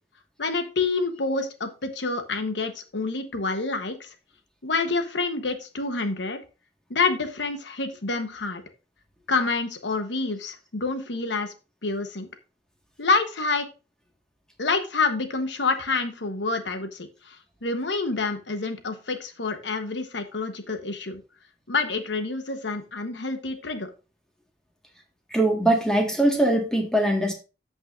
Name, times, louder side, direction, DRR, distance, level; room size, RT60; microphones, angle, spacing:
voice 1, 0.4-4.1 4.6-6.4 6.9-8.6 9.3-11.5 11.8-12.3 13.0-13.7 14.6-17.1 17.6-21.2 21.7-23.9, left 3 dB, 75° left, 8 dB, 1.1 m, -27 dB
voice 2, 25.3-27.3, right 1 dB, 5° left, 1 dB, 1.7 m, -21 dB
14.5 x 5.5 x 2.6 m, 0.32 s
head